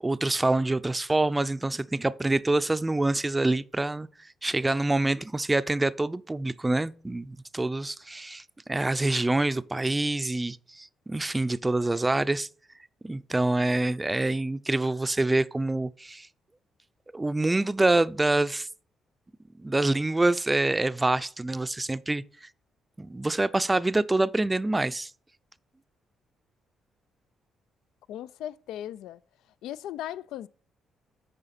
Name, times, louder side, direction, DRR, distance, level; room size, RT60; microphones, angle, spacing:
voice 1, 0.0-4.1 4.4-12.5 13.0-16.3 17.1-18.7 19.6-22.5 23.0-25.1, right 2 dB, 15° right, 0.4 m, -26 dB
voice 2, 28.1-29.2 29.6-30.5, left 12 dB, 85° left, 0.3 m, -37 dB
8.9 x 5.0 x 4.2 m
cardioid pair, 90°, 0 cm